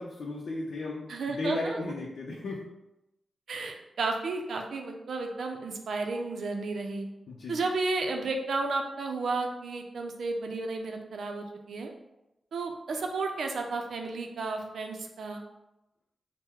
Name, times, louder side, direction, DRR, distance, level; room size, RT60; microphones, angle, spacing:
voice 1, 0.0-2.6 7.3-7.6, left 2 dB, 70° left, -3 dB, 0.6 m, -35 dB
voice 2, 1.1-1.8 3.5-7.1 7.5-11.9 12.5-15.4, right 3 dB, 75° right, 3 dB, 0.5 m, -32 dB
4.4 x 2.1 x 3.6 m, 0.92 s
wide cardioid pair, 180°, 0 cm